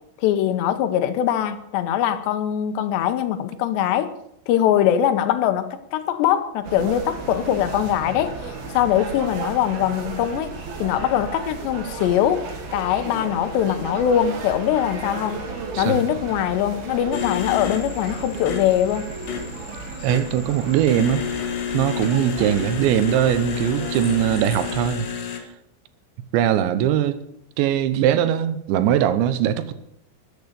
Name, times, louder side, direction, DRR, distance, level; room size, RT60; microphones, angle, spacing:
voice 1, 0.2-4.1 4.5-10.5 10.8-15.5 15.8-19.1, left 10 dB, 80° left, 3.0 m, -22 dB
sound 1, 6.6-24.9, right 3 dB, 60° right, 3.7 m, -34 dB
sound 2, 17.1-25.4, left 8 dB, 60° left, 3.0 m, -31 dB
voice 2, 20.0-21.3 21.7-25.1 26.3-27.2 27.6-29.7, right 11 dB, 85° right, 3.1 m, -21 dB
13.5 x 8.7 x 8.1 m
omnidirectional pair, 5.2 m